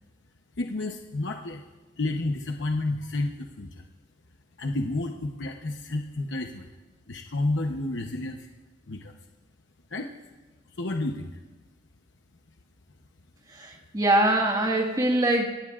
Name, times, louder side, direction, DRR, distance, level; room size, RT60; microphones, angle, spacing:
voice 1, 0.6-1.6 2.0-3.8 4.6-6.7 7.1-8.5 8.9-9.1 9.9-10.1 10.8-11.3, left 2 dB, 85° left, 3 dB, 0.9 m, -30 dB
voice 2, 13.5-15.5, right 1 dB, 20° right, 2 dB, 1.7 m, -23 dB
25.5 x 17.5 x 2.5 m, 1.2 s
head